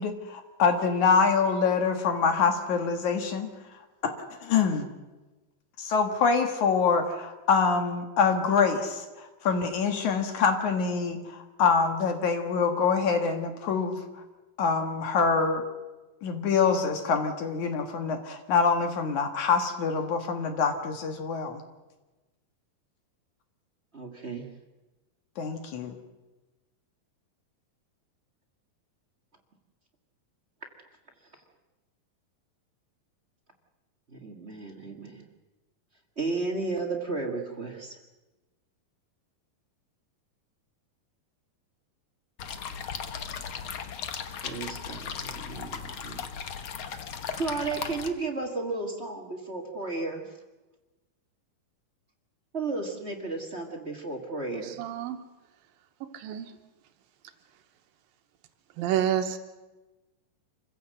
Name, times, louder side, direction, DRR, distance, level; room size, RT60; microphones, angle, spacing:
voice 1, 0.0-3.5 4.0-4.1 4.4-4.9 5.8-14.0 14.6-15.7 16.2-21.6 25.4-26.0, left 5 dB, 60° left, 2.9 m, -25 dB
voice 2, 23.9-24.5 34.1-35.2 36.2-38.0 44.3-46.3 47.3-50.3 52.5-54.8, right 3 dB, 35° right, 1.1 m, -33 dB
sound 1, 42.4-48.1, left 7 dB, 75° left, 1.2 m, -37 dB
voice 3, 54.8-55.2 56.1-56.5 58.8-59.4, right 10 dB, 85° right, 2.8 m, -28 dB
26.5 x 15.5 x 7.7 m
omnidirectional pair, 4.1 m